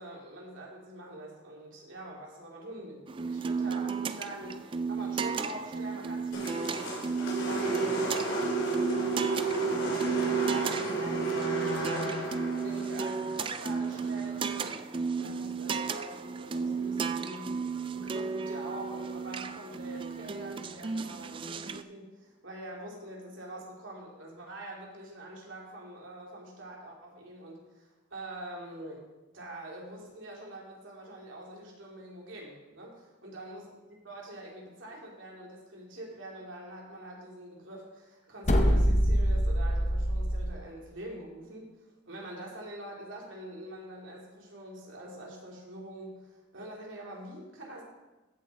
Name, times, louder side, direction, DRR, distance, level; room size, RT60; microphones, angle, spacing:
voice 1, 0.0-12.1 12.6-29.1 29.3-33.6 34.0-41.8 42.1-47.8, right 1 dB, 90° right, -2 dB, 2.9 m, -45 dB
sound 1, 3.1-21.8, right 5 dB, 25° right, 0.3 m, -34 dB
sound 2, 6.3-14.6, right 3 dB, 85° left, 3.3 m, -32 dB
sound 3, 38.4-40.5, equal, 35° left, 0.9 m, -24 dB
15.0 x 7.0 x 4.2 m, 1.1 s
head